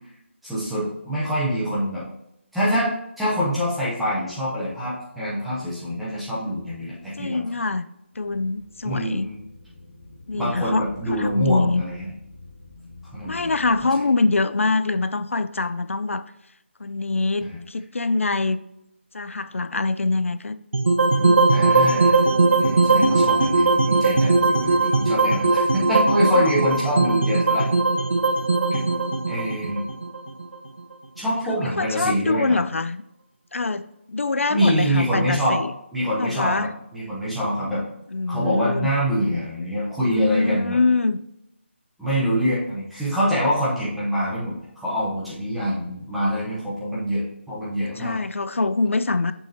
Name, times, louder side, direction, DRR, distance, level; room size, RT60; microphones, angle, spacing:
voice 1, 0.4-2.1 2.5-7.4 8.8-9.4 10.3-12.1 13.1-13.5 17.4-17.6 21.5-22.3 22.6-27.7 28.7-28.8 29.3-29.8 31.2-32.6 34.5-35.6 35.9-37.8 38.3-40.8 42.0-48.2, equal, ahead, -9 dB, 0.8 m, -25 dB
voice 2, 7.2-7.9 8.2-9.3 10.3-11.8 13.3-16.2 16.8-18.6 19.1-20.6 21.2-21.7 26.3-26.5 31.8-33.0 33.5-35.7 36.2-36.7 38.1-38.9 40.0-41.2 48.0-49.3, left 3 dB, 80° left, 12 dB, 0.5 m, -24 dB
sound 1, 8.1-13.7, left 2 dB, 45° left, 1.7 m, -45 dB
sound 2, 20.7-30.9, right 3 dB, 70° right, 0.9 m, -19 dB
6.3 x 6.0 x 2.8 m, 0.83 s
figure-of-eight pair, 175°, 7 cm